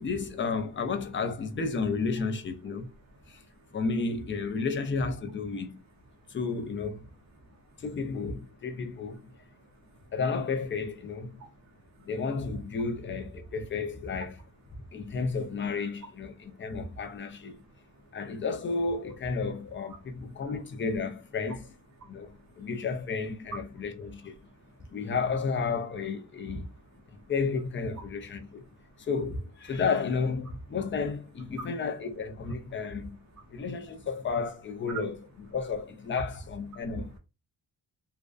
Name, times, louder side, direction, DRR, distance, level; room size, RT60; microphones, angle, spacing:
voice 1, 0.0-2.9 3.3-3.4 3.7-5.8 6.3-7.0 7.8-9.2 10.1-11.4 12.0-14.4 14.9-17.6 18.1-21.7 22.1-24.4 24.9-26.7 27.3-28.6 29.0-33.2 33.5-35.2 35.5-37.2, left 4 dB, 30° left, 0.4 m, -32 dB
voice 2, 3.1-3.7 7.5-7.6 9.3-10.0 11.4-12.1 16.4-16.8 17.7-17.8 20.4-20.5 22.0-22.7 24.4-24.9 28.9-29.1 31.6-31.7 33.3-33.6 34.9-35.0 36.7-36.8, right 6 dB, 45° right, 0.5 m, -48 dB
2.4 x 2.1 x 2.3 m
wide cardioid pair, 125°, 41 cm